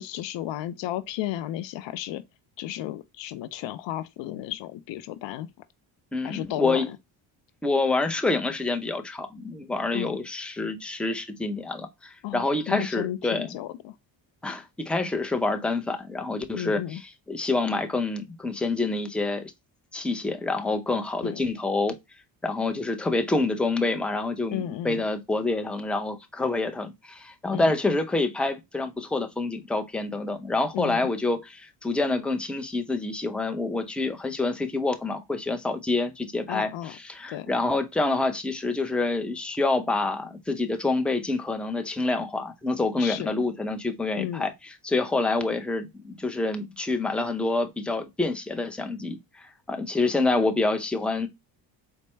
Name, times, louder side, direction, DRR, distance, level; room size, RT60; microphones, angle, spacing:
voice 1, 0.0-2.2 2.6-5.5 6.2-7.0 9.9-10.2 12.2-13.9 16.5-17.0 21.2-21.4 24.5-25.0 27.5-27.7 30.7-31.1 36.5-36.9 37.3-37.5 43.0-43.3 44.2-44.5, left 13 dB, 65° left, 0.5 m, -33 dB
voice 2, 6.1-6.9 7.6-13.5 14.4-17.0 17.3-19.5 19.9-22.0 22.4-44.5 44.8-51.3, left 3 dB, ahead, 0.6 m, -27 dB
4.1 x 2.2 x 3.2 m
supercardioid pair, 65°, 48 cm